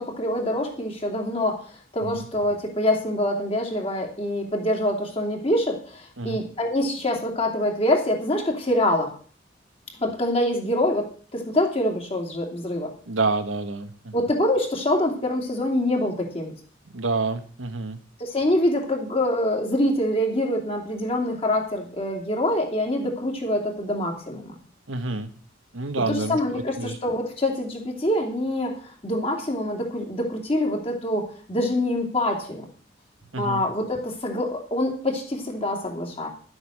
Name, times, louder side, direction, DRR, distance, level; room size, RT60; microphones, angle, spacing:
voice 1, 0.0-1.6 1.9-9.1 10.0-12.9 14.1-16.5 18.2-24.6 26.1-32.6 33.4-36.3, left 1 dB, 30° left, 1 dB, 2.8 m, -25 dB
voice 2, 13.1-14.1 16.9-18.0 24.9-25.3 25.7-27.0 33.3-33.6, right 3 dB, 90° right, 7 dB, 1.4 m, -28 dB
11.5 x 8.0 x 6.5 m, 0.44 s
head